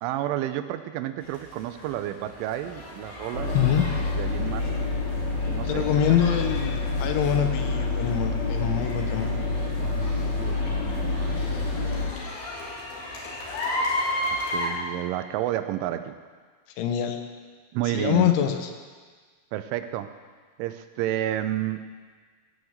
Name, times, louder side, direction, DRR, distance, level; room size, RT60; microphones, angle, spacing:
voice 1, 0.0-4.7 5.2-6.2 9.3-11.5 14.5-16.2 17.7-18.3 19.5-20.1 20.6-21.8, right 13 dB, 90° right, 10 dB, 3.2 m, -31 dB
sound 1, 1.2-14.7, left 1 dB, 60° left, 4.0 m, -35 dB
sound 2, 3.3-12.1, left 3 dB, 45° left, 2.9 m, -27 dB
voice 2, 5.7-9.3 16.8-17.2 17.9-18.6, left 10 dB, 80° left, 6 dB, 3.4 m, -24 dB
16.5 x 6.4 x 7.9 m, 1.5 s
omnidirectional pair, 5.5 m